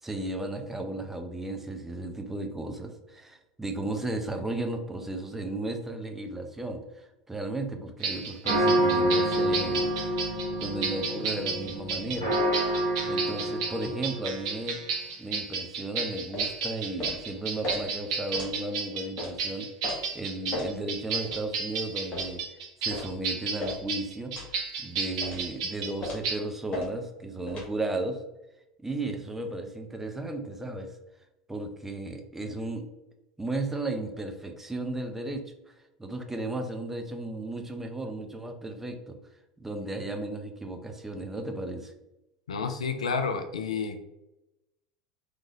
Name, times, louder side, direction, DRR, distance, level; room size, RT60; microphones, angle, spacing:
voice 1, 0.0-9.9 10.2-12.4 13.1-14.8 15.2-28.2 28.8-30.9 31.5-32.9 33.4-35.7 36.0-39.2 39.6-41.9, right 2 dB, 10° right, 4 dB, 0.5 m, -35 dB
sound 1, 8.0-26.4, right 5 dB, 60° right, 0.7 m, -33 dB
sound 2, 8.4-14.6, right 1 dB, 90° right, 1.2 m, -28 dB
sound 3, 16.3-16.5 17.0-17.2 17.6-17.8 18.3-18.5 19.2-19.3 19.8-20.0 20.5-20.7 21.2-21.4 22.1-22.3 22.9-23.1 23.6-23.8 24.3-24.5 25.2-25.5 26.0-26.3 26.7-26.9 27.5-27.7, left 2 dB, 30° left, 1.1 m, -35 dB
voice 2, 42.5-44.0, left 5 dB, 75° left, 7 dB, 0.4 m, -30 dB
3.6 x 3.2 x 2.5 m, 0.93 s
figure-of-eight pair, 75°, 4 cm